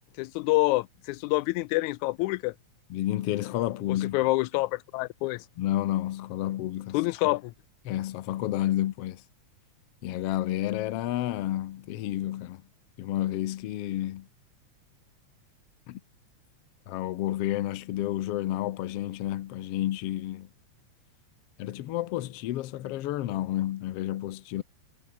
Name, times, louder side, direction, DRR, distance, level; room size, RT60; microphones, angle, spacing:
voice 1, 0.2-2.5 3.9-5.5 6.9-7.5, left 20 dB, 85° left, 1.9 m, -27 dB
voice 2, 2.9-4.2 5.6-7.0 7.3-7.4 7.9-9.2 10.0-12.6 13.0-14.3 15.9-16.0 16.9-20.5 21.6-24.6, left 14 dB, 65° left, 1.7 m, -30 dB
omnidirectional pair, 3.3 m